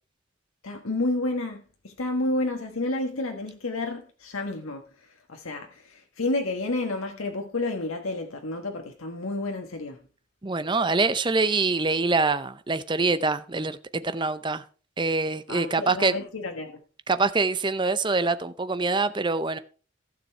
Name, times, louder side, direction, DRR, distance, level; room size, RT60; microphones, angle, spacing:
voice 1, 0.6-10.0 15.5-16.8, left 2 dB, 90° left, 1.4 m, -30 dB
voice 2, 10.4-14.6 15.0-16.1 17.1-19.6, right 3 dB, 20° right, 0.6 m, -25 dB
15.0 x 6.8 x 4.5 m
head